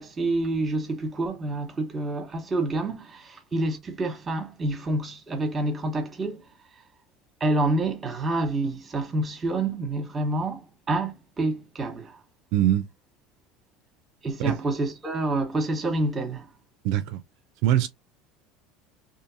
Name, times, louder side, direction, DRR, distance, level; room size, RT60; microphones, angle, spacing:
voice 1, 0.0-6.4 7.4-10.6 10.9-12.2 14.2-16.5, right 2 dB, 25° right, 1.1 m, -28 dB
voice 2, 12.5-12.9 14.4-14.6 16.8-17.2 17.6-17.9, right 12 dB, 70° right, 0.4 m, -22 dB
2.6 x 2.5 x 2.7 m
supercardioid pair, 95°, 0 cm